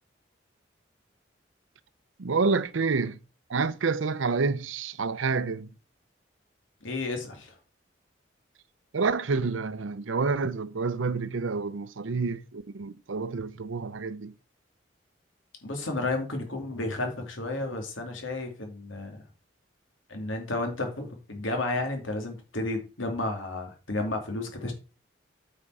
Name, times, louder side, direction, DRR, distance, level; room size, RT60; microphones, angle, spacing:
voice 1, 2.2-3.2 3.5-5.7 8.9-14.3, right 4 dB, 85° right, 0.6 m, -28 dB
voice 2, 6.8-7.6 15.6-19.2 20.1-24.7, left 2 dB, 85° left, 2.8 m, -32 dB
8.9 x 5.3 x 4.8 m
head